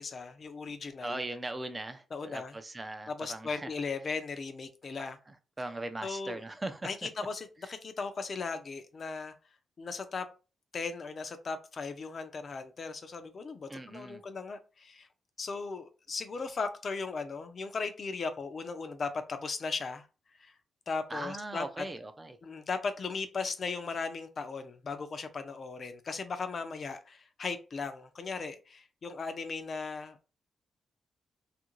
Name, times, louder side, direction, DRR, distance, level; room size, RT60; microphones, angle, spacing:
voice 1, 0.0-1.2 2.1-2.6 3.1-5.2 6.0-6.4 6.8-9.3 9.8-10.3 10.7-15.1 15.4-20.1 20.4-20.5 20.9-21.8 22.4-30.3, left 4 dB, 45° left, 0.4 m, -37 dB
voice 2, 1.0-3.7 5.0-6.8 13.7-14.2 21.1-22.4, right 2 dB, 20° right, 0.4 m, -39 dB
2.7 x 2.5 x 3.0 m
cardioid pair, 115°, 0 cm